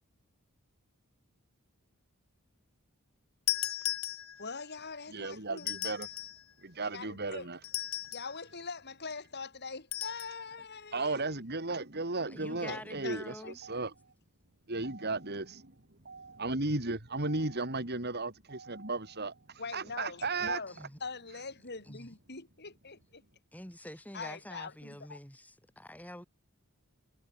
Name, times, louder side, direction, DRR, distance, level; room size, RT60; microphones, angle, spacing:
sound 1, 3.5-4.6 5.6-6.4 7.6-8.4 9.9-10.4, left 12 dB, 65° left, 6.1 m, -36 dB
voice 1, 4.4-5.7 6.8-7.5 8.1-11.3 12.7-13.5 19.6-20.7 21.0-23.2 24.1-25.2, left 4 dB, 50° left, 3.7 m, -43 dB
voice 2, 5.1-6.1 6.6-7.6 10.9-13.9 14.7-20.6, right 3 dB, 45° right, 3.2 m, -35 dB
voice 3, 12.3-13.6 20.7-21.0 21.9-22.1 23.5-26.2, left 1 dB, 5° left, 7.5 m, -46 dB
head